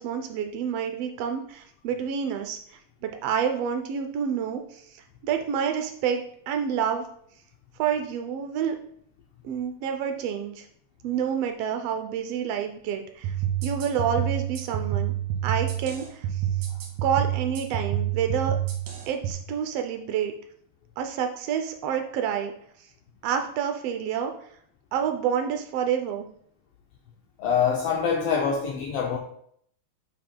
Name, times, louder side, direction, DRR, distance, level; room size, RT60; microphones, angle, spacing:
voice 1, 0.0-7.1 7.8-8.8 9.4-10.7 11.0-13.3 13.6-15.1 15.4-16.4 17.0-18.6 19.1-20.3 21.0-22.5 23.2-24.3 24.9-26.3, right 8 dB, 85° right, 5 dB, 1.3 m, -28 dB
sound 1, 13.2-19.3, right 11 dB, 70° right, 2.2 m, -28 dB
voice 2, 27.4-29.2, left 6 dB, 75° left, 0 dB, 1.5 m, -25 dB
8.6 x 5.5 x 2.2 m, 0.65 s
omnidirectional pair, 3.3 m